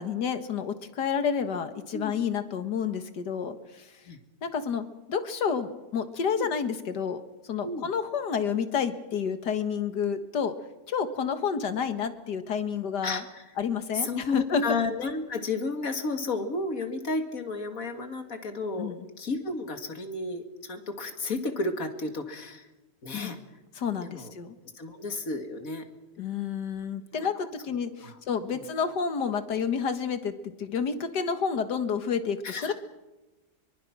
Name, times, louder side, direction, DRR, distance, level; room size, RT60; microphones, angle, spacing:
voice 1, 0.0-3.9 4.4-10.5 10.9-13.2 13.6-14.8 18.8-19.1 23.1-23.4 23.8-24.6 26.2-32.7, left 6 dB, 80° left, 10 dB, 2.1 m, -30 dB
voice 2, 13.0-13.4 13.9-22.7 23.0-23.4 24.0-24.3 24.7-25.9 27.1-27.3 28.0-28.2 28.5-28.7 32.4-32.7, left 3 dB, 55° left, 6 dB, 2.5 m, -32 dB
24.5 x 23.5 x 6.1 m, 1.1 s
omnidirectional pair, 1.8 m